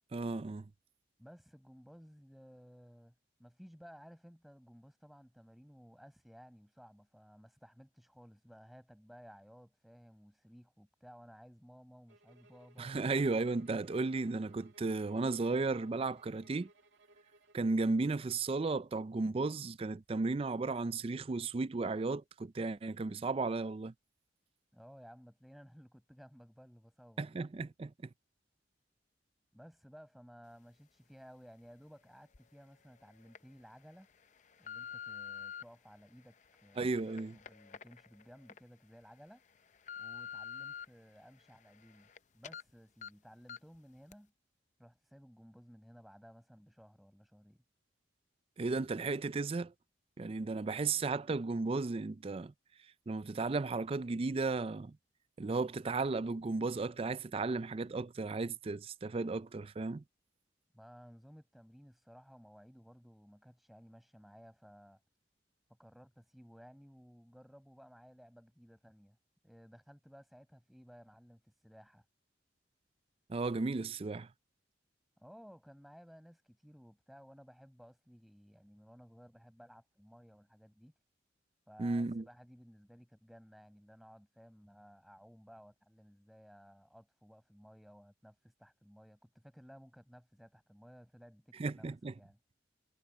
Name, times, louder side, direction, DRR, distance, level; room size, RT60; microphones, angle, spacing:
voice 1, 0.1-0.7 12.8-16.7 17.5-23.9 27.2-27.9 36.8-37.4 48.6-49.7 50.2-52.5 53.1-55.0 55.4-60.0 73.3-74.3 81.8-82.2 91.6-92.1, right 3 dB, 30° right, 0.4 m, -34 dB
voice 2, 1.2-3.1 3.4-12.9 24.7-27.5 29.5-34.1 34.6-39.4 40.0-44.3 44.8-47.6 60.7-65.0 65.8-69.2 69.4-72.1 75.2-80.9 81.7-91.9 92.2-92.4, equal, ahead, 5.3 m, -57 dB
sound 1, 12.1-17.8, right 2 dB, 85° right, 2.2 m, -64 dB
sound 2, 32.3-32.4 33.1-33.4 34.0-35.6 36.3-38.6 39.0-39.1 39.6-40.9 41.3-42.2 42.4-42.6 43.0-43.1 43.5-43.8 44.1-44.2, left 8 dB, 40° left, 0.5 m, -47 dB
head